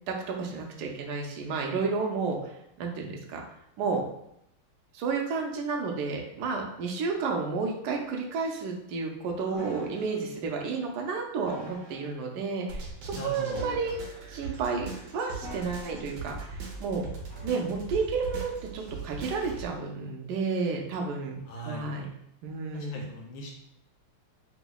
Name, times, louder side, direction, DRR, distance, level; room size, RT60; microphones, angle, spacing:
voice 1, 0.1-2.5 2.8-3.4 3.8-4.0 4.9-14.0 14.3-17.1 17.4-21.4 21.6-22.1 22.4-23.1, right 4 dB, 85° right, 1 dB, 0.9 m, -31 dB
voice 2, 9.4-10.0 13.1-13.7 21.5-21.9 22.7-23.5, equal, 75° left, 0 dB, 1.2 m, -40 dB
sound 1, 9.6-10.2 11.4-12.1 13.5-14.4 15.4-16.2 17.3-17.5, right 1 dB, 35° right, 0.9 m, -44 dB
sound 2, 12.7-19.6, right 4 dB, 65° right, 1.1 m, -40 dB
5.7 x 2.0 x 2.3 m, 0.77 s
omnidirectional pair, 2.3 m